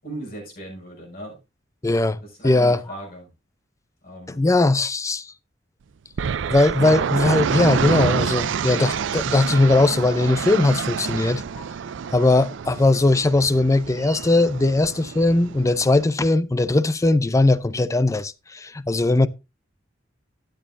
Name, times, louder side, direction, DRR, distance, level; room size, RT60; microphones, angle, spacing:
voice 1, 0.0-1.4 2.2-3.3 4.0-4.4, right 1 dB, 50° left, 5.9 m, -37 dB
voice 2, 1.8-2.2 2.4-2.8 4.3-5.3 6.5-11.6 12.1-19.3, left 2 dB, 15° left, 0.5 m, -19 dB
sound 1, 6.2-16.0, right 6 dB, 70° right, 0.4 m, -27 dB
12.5 x 9.0 x 2.5 m
head